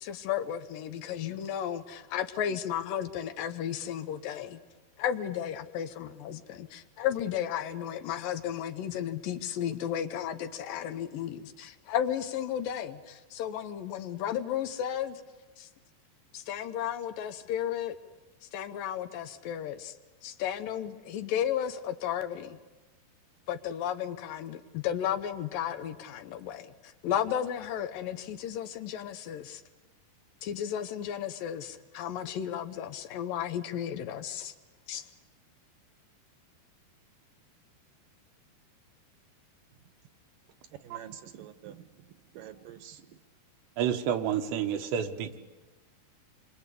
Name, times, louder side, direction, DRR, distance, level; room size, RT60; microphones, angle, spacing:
voice 1, 0.0-4.6 5.0-15.2 15.6-15.7 16.3-17.9 18.4-20.0 20.2-22.6 23.5-29.6 30.4-34.5 34.9-35.1, left 10 dB, 70° left, 11 dB, 2.3 m, -34 dB
voice 2, 40.8-43.2, right 10 dB, 65° right, 10 dB, 2.4 m, -48 dB
voice 3, 43.8-45.4, right 9 dB, 90° right, 4 dB, 3.6 m, -29 dB
28.0 x 24.0 x 8.4 m, 1.2 s
omnidirectional pair, 4.9 m